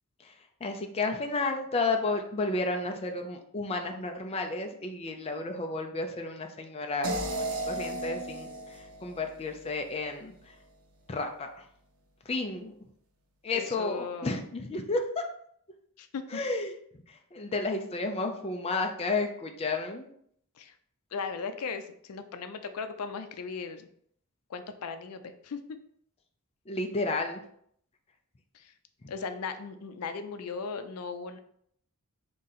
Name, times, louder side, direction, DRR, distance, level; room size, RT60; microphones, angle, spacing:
voice 1, 0.6-10.3 11.1-11.5 12.3-12.7 13.4-15.0 16.3-16.7 17.1-20.1 26.7-27.4 29.0-29.1, left 3 dB, 25° left, 4 dB, 0.4 m, -32 dB
sound 1, 7.0-10.1, right 1 dB, 80° right, 0.7 m, -35 dB
voice 2, 13.5-14.4 16.0-16.4 20.5-20.8 21.1-23.9 24.5-25.6 28.5-28.7 29.1-31.4, left 5 dB, 85° left, 8 dB, 0.4 m, -37 dB
3.8 x 2.7 x 4.0 m, 0.67 s
head